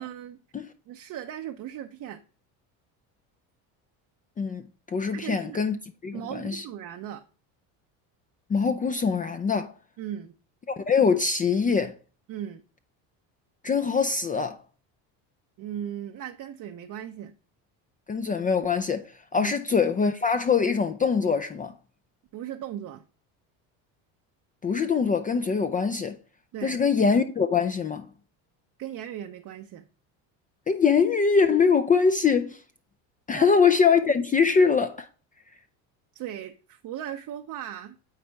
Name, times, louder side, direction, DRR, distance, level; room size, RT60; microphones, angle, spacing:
voice 1, 0.0-0.4 0.9-2.2 5.1-5.6 6.1-7.2 10.0-10.3 12.3-12.6 15.6-17.3 19.4-19.5 22.3-23.0 26.5-26.8 28.8-29.8 33.3-33.5 36.1-37.9, right 10 dB, 50° right, 0.6 m, -37 dB
voice 2, 4.9-5.8 6.0-6.6 8.5-9.7 10.7-11.9 13.6-14.6 18.1-21.7 24.6-26.2 26.6-28.1 30.7-32.6 33.3-35.1, left 5 dB, 20° left, 0.4 m, -23 dB
8.9 x 4.2 x 3.4 m
supercardioid pair, 100°, 42 cm